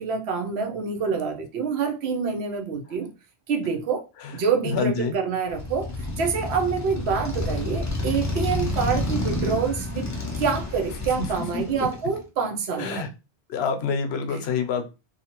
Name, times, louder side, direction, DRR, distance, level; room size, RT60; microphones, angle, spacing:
voice 1, 0.0-3.1 3.5-4.0 4.3-5.9 6.2-10.1 10.4-13.1 14.3-14.4, right 5 dB, 85° right, 0.9 m, -26 dB
voice 2, 4.6-5.2 11.2-11.3 11.5-11.6 12.8-13.1 13.5-14.9, left 5 dB, 80° left, 0.8 m, -26 dB
Motorcycle, 5.5-12.2, left 1 dB, 25° left, 0.4 m, -29 dB
2.7 x 2.4 x 2.9 m
omnidirectional pair, 1.1 m